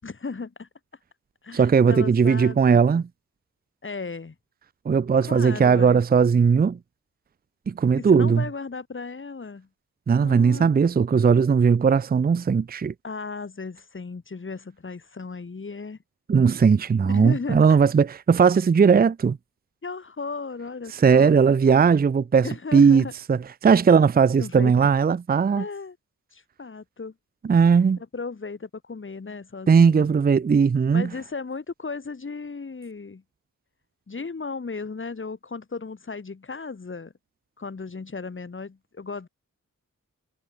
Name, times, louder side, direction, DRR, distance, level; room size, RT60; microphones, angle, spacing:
voice 1, 0.0-0.7 1.4-2.8 3.8-4.3 5.2-6.0 8.0-9.7 10.2-10.7 13.0-16.0 17.1-17.8 19.8-21.4 22.4-23.1 24.4-24.9 25.6-26.0 26.3-27.1 28.0-30.1 30.9-33.2 34.1-37.1 37.6-39.3, left 4 dB, 40° left, 7.7 m, -35 dB
voice 2, 1.5-3.0 4.9-6.8 7.7-8.4 10.1-12.9 16.3-19.4 20.9-25.6 27.5-28.0 29.7-31.1, right 6 dB, 30° right, 0.5 m, -18 dB
wide cardioid pair, 155°, 32 cm